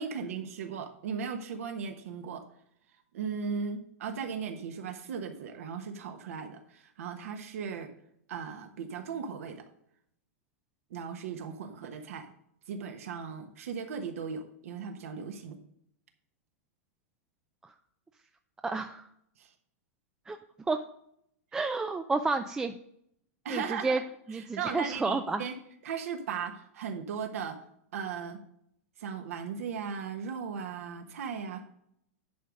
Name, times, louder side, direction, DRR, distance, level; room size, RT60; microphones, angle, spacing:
voice 1, 0.0-2.4 3.1-7.9 8.3-9.6 10.9-12.3 12.7-15.6 19.4-19.5 23.4-24.0 24.3-25.5 25.8-27.6 27.9-28.4 29.0-31.6, right 6 dB, 70° right, 5 dB, 1.2 m, -37 dB
voice 2, 18.6-19.1 20.3-20.4 20.7-20.8 21.5-22.7 23.5-24.0 24.3-25.4, right 3 dB, 10° right, 6 dB, 0.3 m, -30 dB
10.0 x 3.8 x 6.2 m, 0.71 s
hypercardioid pair, 140°, 8 cm